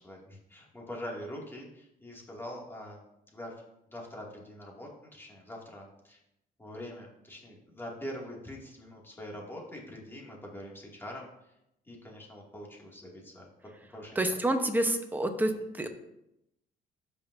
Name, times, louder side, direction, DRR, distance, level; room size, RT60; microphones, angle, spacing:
voice 1, 0.0-3.0 3.3-3.5 3.9-6.2 6.6-11.5 11.9-14.3, equal, 15° left, -2 dB, 2.4 m, -44 dB
voice 2, 14.2-15.5 15.8-15.9, right 1 dB, 10° right, 5 dB, 1.0 m, -27 dB
14.0 x 5.4 x 2.7 m, 0.84 s
cardioid pair, 110°, 17 cm